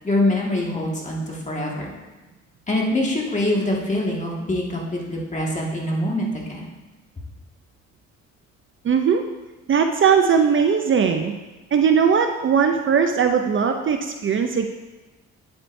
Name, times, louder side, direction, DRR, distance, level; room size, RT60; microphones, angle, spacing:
voice 1, 0.0-1.9 2.7-6.7, left 1 dB, 25° left, -2 dB, 1.8 m, -24 dB
voice 2, 8.8-9.2 9.7-11.3 11.7-14.7, right 6 dB, 40° right, 5 dB, 0.5 m, -19 dB
9.2 x 7.9 x 2.6 m, 1.2 s
cardioid pair, 90°, 30 cm